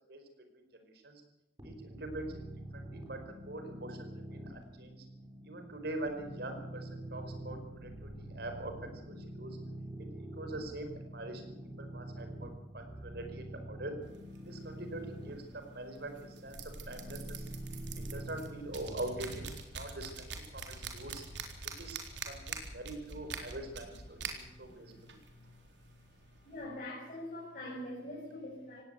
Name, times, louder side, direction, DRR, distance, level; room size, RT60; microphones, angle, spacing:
voice 1, 0.5-1.2 1.6-2.4 2.7-5.0 5.4-9.6 10.1-13.9 14.4-17.5 17.9-19.4 19.7-20.3 20.5-21.2 21.8-22.0 22.2-25.2, right 2 dB, 60° right, 6 dB, 4.8 m, -44 dB
sound 1, 1.6-19.5, right 1 dB, 25° right, 4.1 m, -46 dB
sound 2, 14.0-26.6, right 4 dB, 80° right, 3.9 m, -46 dB
voice 2, 24.6-25.0 26.4-28.8, left 1 dB, 45° left, -4 dB, 5.8 m, -43 dB
18.5 x 17.5 x 8.2 m, 0.98 s
head